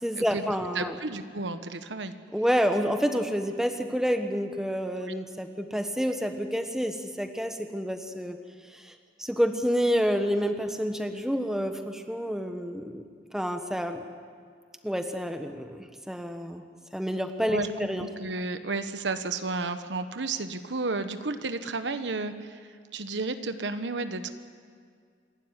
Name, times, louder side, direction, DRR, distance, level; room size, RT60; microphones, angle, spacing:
voice 1, 0.0-1.0 2.3-8.4 8.7-8.9 9.2-13.0 13.3-14.0 14.8-16.6 16.9-18.1, equal, 5° right, 6 dB, 1.2 m, -28 dB
voice 2, 0.7-2.1 5.1-5.2 17.5-24.3, right 3 dB, 85° right, 9 dB, 1.2 m, -32 dB
27.0 x 12.5 x 9.8 m, 2.1 s
head